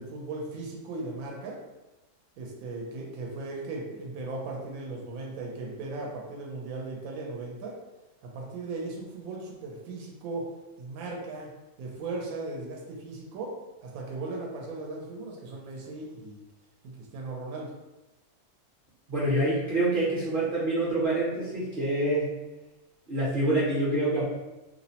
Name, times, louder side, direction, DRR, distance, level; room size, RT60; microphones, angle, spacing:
voice 1, 0.0-1.6 2.4-7.8 8.2-10.5 10.8-11.5 11.8-16.4 16.8-17.7, right 3 dB, 75° right, -1 dB, 1.0 m, -37 dB
voice 2, 19.1-22.4 23.1-24.2, right 1 dB, 45° right, -8 dB, 0.7 m, -26 dB
2.6 x 2.0 x 2.7 m, 1.0 s
omnidirectional pair, 1.5 m